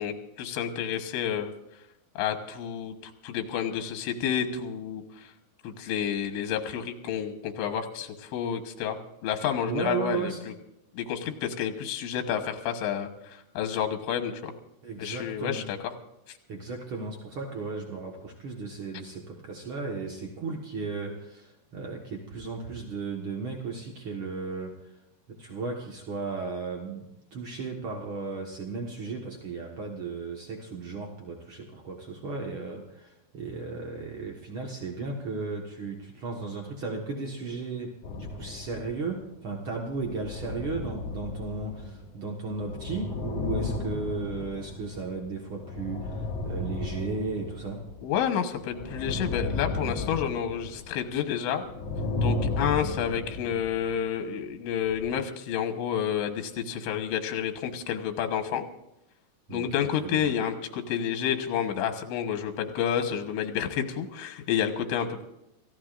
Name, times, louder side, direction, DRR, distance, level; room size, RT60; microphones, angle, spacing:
voice 1, 0.0-1.5 2.2-5.3 5.6-10.5 10.9-14.5 15.0-15.8 48.0-51.6 52.2-58.7 59.5-65.2, left 9 dB, 85° left, 6 dB, 3.6 m, -30 dB
voice 2, 9.7-10.4 14.8-15.7 16.5-24.9 25.3-47.8 59.5-60.3, right 4 dB, 80° right, 1 dB, 1.1 m, -35 dB
sound 1, 38.0-39.4 39.8-48.2 48.5-51.3 51.6-54.1 54.9-55.1, left 2 dB, 45° left, 4.3 m, -34 dB
28.0 x 15.0 x 2.6 m, 0.86 s
omnidirectional pair, 5.0 m